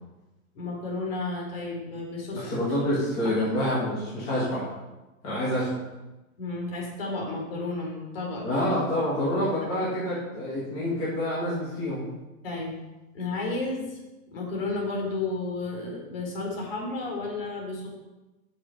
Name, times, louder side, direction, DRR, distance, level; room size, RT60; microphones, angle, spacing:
voice 1, 0.6-2.7 3.2-3.4 6.4-8.6 9.6-9.7 12.4-12.8 13.1-14.0 14.3-17.9, left 3 dB, 40° left, -2 dB, 3.5 m, -32 dB
voice 2, 2.3-4.6 5.2-5.8 8.4-12.1, left 1 dB, 15° left, -9 dB, 1.8 m, -27 dB
8.7 x 7.2 x 5.4 m, 1.1 s
hypercardioid pair, 180°, 42 cm